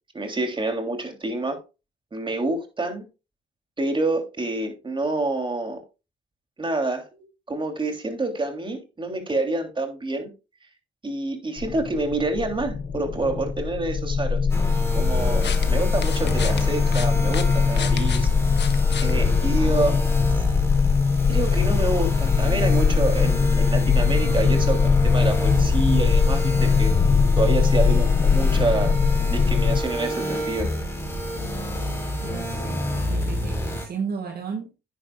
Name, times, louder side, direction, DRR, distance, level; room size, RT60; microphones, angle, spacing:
voice 1, 0.1-1.6 2.1-3.1 3.8-5.8 6.6-10.3 11.0-14.4 14.9-18.3 19.0-20.0 21.3-26.9 27.4-29.0 29.3-30.7, right 2 dB, 25° right, 3.3 m, -27 dB
sound 1, 11.6-29.8, left 5 dB, 40° left, 0.7 m, -21 dB
sound 2, 14.5-33.9, equal, 15° left, 4.4 m, -29 dB
sound 3, 15.1-20.0, left 8 dB, 60° left, 1.4 m, -35 dB
voice 2, 32.2-34.7, right 6 dB, 50° right, 1.8 m, -34 dB
10.5 x 10.0 x 2.5 m
cardioid pair, 90°, 20 cm